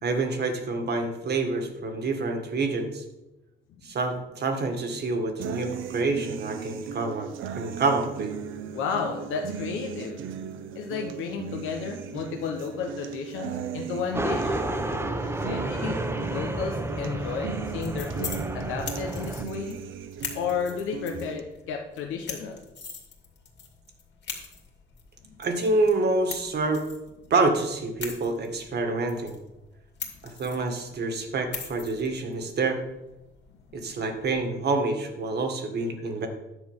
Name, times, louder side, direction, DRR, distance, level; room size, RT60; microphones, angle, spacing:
voice 1, 0.0-3.0 3.8-7.3 7.5-8.3 15.9-16.1 25.4-26.8 27.3-29.4 30.2-32.8 33.7-36.3, right 3 dB, 55° right, 5 dB, 1.7 m, -27 dB
sound 1, 5.4-21.4, right 8 dB, 80° right, 0.8 m, -37 dB
voice 2, 8.7-10.2 10.7-14.6 15.3-16.0 16.3-19.8 20.3-22.6 33.9-34.0, left 6 dB, 90° left, 2 dB, 1.1 m, -32 dB
sound 2, 14.1-19.4, right 1 dB, 10° right, 0.9 m, -31 dB
sound 3, 17.5-34.4, left 6 dB, 60° left, 2.4 m, -43 dB
10.0 x 4.4 x 7.2 m, 0.98 s
cardioid pair, 90°, 20 cm